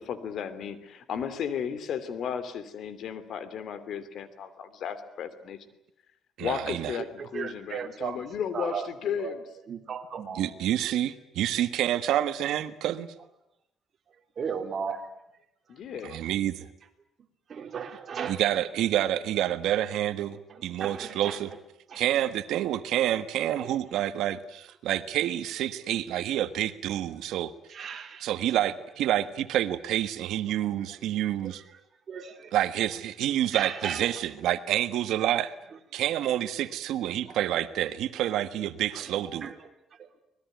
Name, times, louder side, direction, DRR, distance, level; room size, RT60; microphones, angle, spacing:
voice 1, 0.1-5.6 6.4-9.4 15.7-16.2, left 7 dB, 60° left, 14 dB, 3.0 m, -34 dB
voice 2, 6.4-6.9 10.3-13.1 16.0-16.7 18.3-21.5 21.9-27.5 28.2-31.6 32.5-35.5 35.9-39.5, right 12 dB, 80° right, 12 dB, 1.5 m, -28 dB
voice 3, 7.2-8.2 8.5-8.9 9.2-9.4 9.7-10.4 14.4-15.0 16.0-16.2 17.5-18.4 20.5-21.4 21.9-22.0 24.0-24.1 27.7-28.3 30.7-30.8 31.4-31.6 32.1-32.6 33.5-34.2 35.7-35.8 37.2-37.4 38.9-39.6 40.0-40.1, right 7 dB, 45° right, 5 dB, 3.6 m, -36 dB
25.5 x 20.5 x 9.3 m, 0.82 s
cardioid pair, 135°, 0 cm